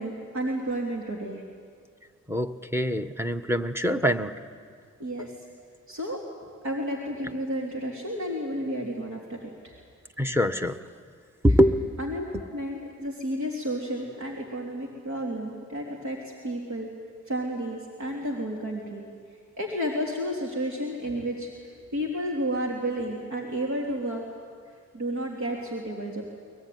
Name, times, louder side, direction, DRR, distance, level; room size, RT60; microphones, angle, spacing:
voice 1, 0.0-1.4 5.0-5.3 5.9-6.2 6.6-9.8 12.0-16.9 17.3-19.0 19.6-24.2 24.9-26.2, equal, 65° right, -1 dB, 3.5 m, -31 dB
voice 2, 2.3-4.3 10.2-10.8 11.4-11.9 12.3-12.4, equal, 10° right, 10 dB, 1.4 m, -24 dB
23.0 x 22.0 x 9.6 m, 2.1 s
cardioid pair, 50°, 31 cm